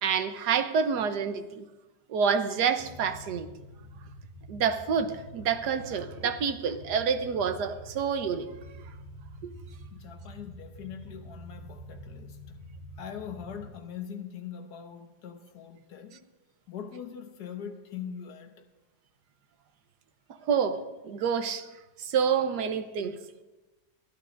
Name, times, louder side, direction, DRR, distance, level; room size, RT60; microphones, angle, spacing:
voice 1, 0.0-1.7 2.1-3.5 4.5-8.5 9.4-9.5 20.4-21.7 22.0-23.2, right 6 dB, 80° right, 1.4 m, -28 dB
sound 1, 2.8-13.7, equal, 5° left, 4.4 m, -47 dB
voice 2, 9.9-12.6 13.0-16.3 16.7-18.6, left 8 dB, 75° left, 1.5 m, -42 dB
22.0 x 13.5 x 2.6 m
omnidirectional pair, 1.7 m